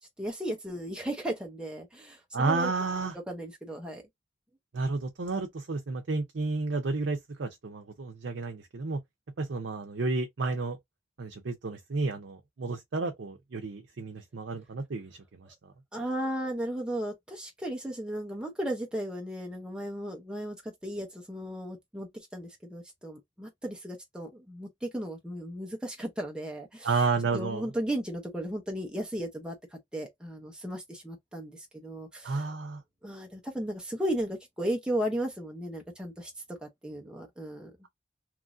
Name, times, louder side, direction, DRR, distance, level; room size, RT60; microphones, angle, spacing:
voice 1, 0.2-2.7 3.3-4.0 15.9-27.0 27.3-32.5 33.0-37.7, right 1 dB, 5° right, 0.6 m, -35 dB
voice 2, 2.3-3.1 4.7-9.0 9.4-10.8 11.2-15.7 26.8-27.7 32.2-32.8, right 3 dB, 75° right, 0.6 m, -31 dB
3.0 x 2.5 x 2.5 m
head